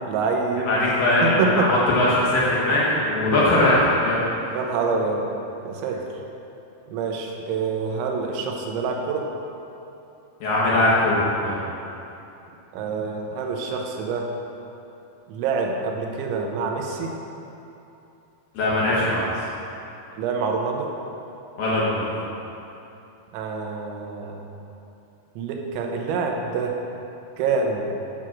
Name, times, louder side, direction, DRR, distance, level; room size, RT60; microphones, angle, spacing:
voice 1, 0.0-0.8 1.2-1.7 4.5-5.3 5.6-6.0 6.9-9.2 12.7-14.3 15.3-17.1 20.1-20.9 23.3-24.4 25.4-26.7 27.4-27.9, right 4 dB, 90° right, 1 dB, 3.3 m, -26 dB
voice 2, 0.7-4.2 10.4-11.6 18.5-19.3 21.6-22.1, left 1 dB, 65° left, -7 dB, 2.7 m, -20 dB
9.6 x 5.8 x 6.2 m, 2.9 s
omnidirectional pair, 5.2 m